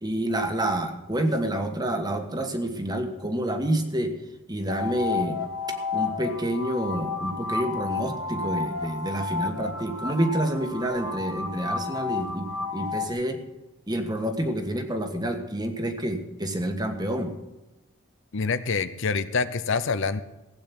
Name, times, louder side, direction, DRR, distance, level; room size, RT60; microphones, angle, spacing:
voice 1, 0.0-4.1 4.5-5.4 5.9-13.4 13.9-17.3, right 1 dB, 20° right, 6 dB, 1.4 m, -28 dB
sound 1, 4.7-13.1, left 4 dB, 85° left, 1.4 m, -31 dB
voice 2, 18.3-20.2, left 4 dB, 60° left, 12 dB, 0.7 m, -26 dB
16.0 x 8.7 x 6.0 m, 1.0 s
head